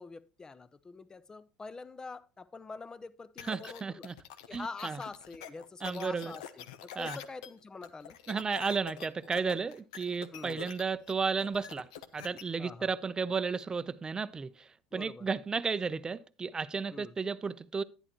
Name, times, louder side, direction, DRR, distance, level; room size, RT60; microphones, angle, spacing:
voice 1, 0.0-4.1 4.5-8.2 10.3-10.6 12.6-12.9 14.9-15.3 16.9-17.1, left 4 dB, 20° left, 0.7 m, -45 dB
sound 1, 3.4-12.4, left 9 dB, 70° left, 0.8 m, -46 dB
voice 2, 3.5-4.1 4.5-5.0 5.8-6.3 7.0-7.2 8.3-11.9 12.1-17.8, right 5 dB, 20° right, 0.6 m, -33 dB
11.0 x 9.8 x 3.0 m
hypercardioid pair, 75°, 3 cm